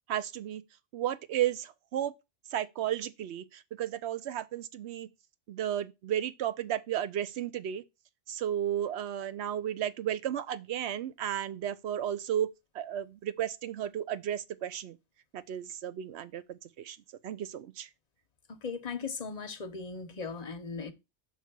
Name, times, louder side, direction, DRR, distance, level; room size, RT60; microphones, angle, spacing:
voice 1, 0.1-0.6 0.9-2.1 2.5-5.1 5.5-7.8 8.3-12.5 12.7-15.0 15.3-17.0 17.2-17.9, right 11 dB, 75° right, 0.9 m, -33 dB
voice 2, 18.6-20.9, left 5 dB, 40° left, 0.9 m, -38 dB
6.5 x 3.4 x 6.1 m
omnidirectional pair, 1.2 m